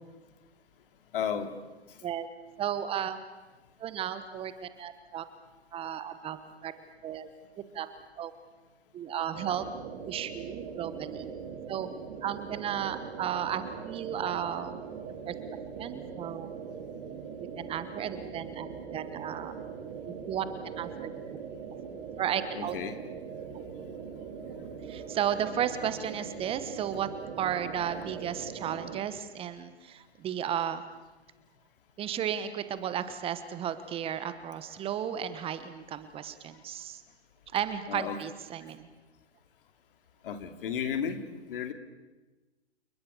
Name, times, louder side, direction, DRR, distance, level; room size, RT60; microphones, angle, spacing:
voice 1, 1.1-1.5 1.9-2.0 22.5-23.0 37.9-38.2 40.2-41.2 41.5-41.7, left 7 dB, 55° left, 8 dB, 2.8 m, -33 dB
voice 2, 2.6-3.2 3.8-5.2 5.7-6.7 7.0-7.3 7.7-7.9 8.2-8.3 8.9-9.7 10.0-11.3 11.7-11.9 12.2-14.8 15.2-15.3 15.8-16.5 17.6-19.5 20.0-20.5 20.8-21.1 22.2-22.7 23.5-23.7 24.9-27.1 27.4-30.8 32.0-37.0 37.5-38.9, right 9 dB, 15° right, 12 dB, 1.2 m, -34 dB
sound 1, 9.3-29.0, right 6 dB, 40° right, 4.8 m, -41 dB
29.5 x 20.0 x 7.0 m, 1.2 s
hypercardioid pair, 125°, 33 cm